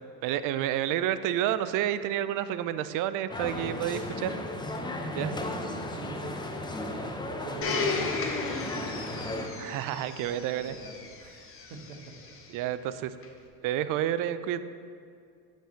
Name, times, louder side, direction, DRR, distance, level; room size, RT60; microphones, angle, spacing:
voice 1, 0.2-4.4 5.1-5.3 9.6-10.7 12.5-13.1 13.6-14.6, right 11 dB, 45° right, 13 dB, 0.4 m, -29 dB
sound 1, 3.3-9.5, left 1 dB, 10° left, 0.6 m, -35 dB
voice 2, 5.2-6.4 6.8-9.3 10.5-12.1, right 4 dB, 70° right, 2 dB, 1.4 m, -44 dB
Domestic sounds home sounds, 7.6-12.5 13.2-13.3, left 4 dB, 25° left, 1.0 m, -35 dB
8.5 x 6.0 x 4.4 m, 2.3 s
supercardioid pair, 95°, 48 cm